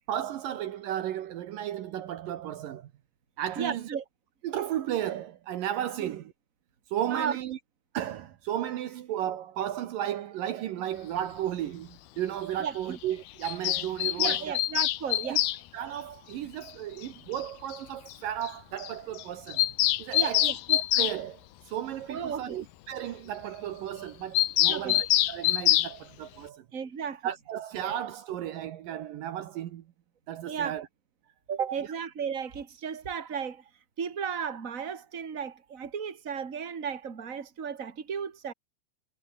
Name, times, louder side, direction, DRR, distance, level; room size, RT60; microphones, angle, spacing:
voice 1, 0.1-2.9 3.4-4.0 4.4-6.3 6.9-7.6 7.9-14.6 15.2-15.4 15.7-19.6 20.0-21.4 21.7-26.6 27.2-29.8 30.3-30.9, right 11 dB, 75° right, 2.9 m, -34 dB
voice 2, 3.6-4.0 6.0-6.1 7.1-7.4 12.6-13.0 14.2-15.4 20.1-20.6 22.1-22.6 24.7-25.0 26.7-27.3 30.5-30.7 31.5-33.6 34.0-38.5, right 7 dB, 25° right, 2.3 m, -34 dB
Bird vocalization bird call bird song, 13.4-15.6 17.0-17.1 17.4-17.5 17.7-17.8 18.1-18.2 18.4-18.5 18.8-18.9 19.2-21.2 24.3-25.9, left 15 dB, 90° left, 3.0 m, -25 dB
omnidirectional pair, 4.2 m